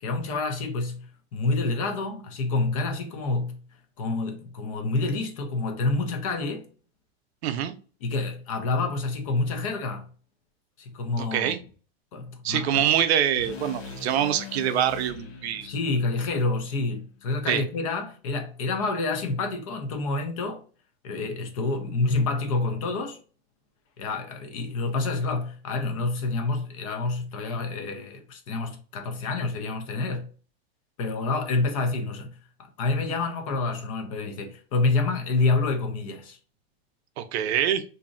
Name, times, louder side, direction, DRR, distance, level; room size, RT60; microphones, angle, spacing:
voice 1, 0.0-3.6 4.0-6.7 8.0-10.1 10.8-11.6 12.1-12.7 15.6-20.6 21.0-23.2 24.0-30.3 31.0-36.4, left 3 dB, 35° left, 0.4 m, -28 dB
voice 2, 7.4-7.8 11.2-11.6 12.4-15.7 17.5-17.6 37.2-37.8, right 10 dB, 85° right, 0.6 m, -25 dB
sound 1, 13.4-17.5, left 4 dB, 70° left, 1.1 m, -42 dB
2.6 x 2.0 x 3.6 m
supercardioid pair, 175°, 32 cm